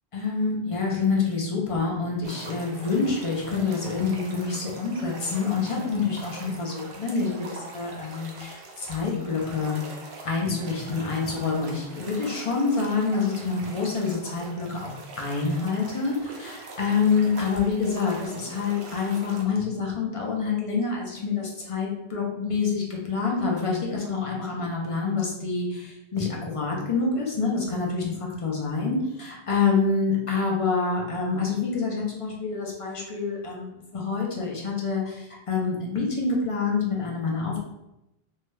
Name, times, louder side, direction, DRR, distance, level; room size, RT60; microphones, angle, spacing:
voice 1, 0.1-9.9 10.2-14.9 15.2-37.6, left 4 dB, 40° left, -2 dB, 0.5 m, -27 dB
sound 1, 2.2-19.4, right 2 dB, 70° right, 0.7 m, -43 dB
2.7 x 2.2 x 3.1 m, 0.89 s
omnidirectional pair, 1.1 m